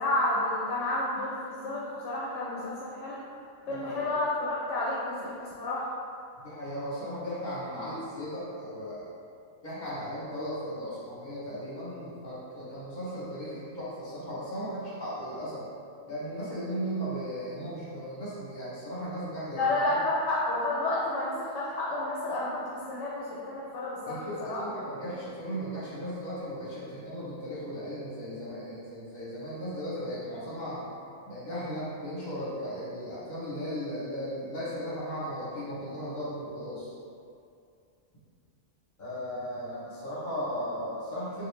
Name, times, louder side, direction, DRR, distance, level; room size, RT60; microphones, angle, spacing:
voice 1, 0.0-3.2 3.7-5.9 19.5-24.6, left 2 dB, 70° left, -6 dB, 0.9 m, -30 dB
voice 2, 6.4-9.1 9.6-15.7 16.1-20.0 24.1-30.8 31.3-36.9 39.0-41.5, equal, 40° left, -9 dB, 0.8 m, -36 dB
2.9 x 2.6 x 3.1 m, 2.4 s
omnidirectional pair, 1.4 m